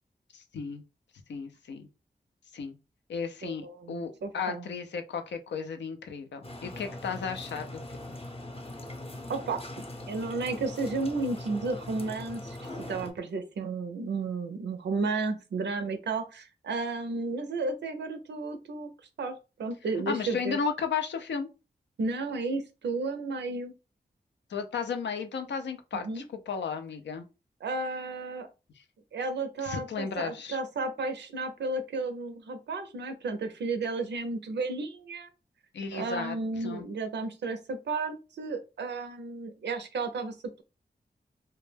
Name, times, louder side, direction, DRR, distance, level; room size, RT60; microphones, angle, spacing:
voice 1, 0.3-0.8 1.3-1.9 2.5-2.7 3.1-7.8 20.1-21.5 24.5-27.2 29.6-30.6 35.7-36.9, left 6 dB, 85° left, 7 dB, 0.4 m, -34 dB
voice 2, 3.4-4.7 9.3-9.6 10.1-18.9 19.2-20.6 22.0-23.7 25.9-26.2 27.6-28.5 29.1-35.3 35.9-40.6, right 3 dB, 90° right, 8 dB, 0.4 m, -33 dB
sound 1, 6.4-13.1, left 1 dB, 30° left, 0.6 m, -41 dB
2.1 x 2.1 x 3.2 m, 0.29 s
cardioid pair, 40°, 18 cm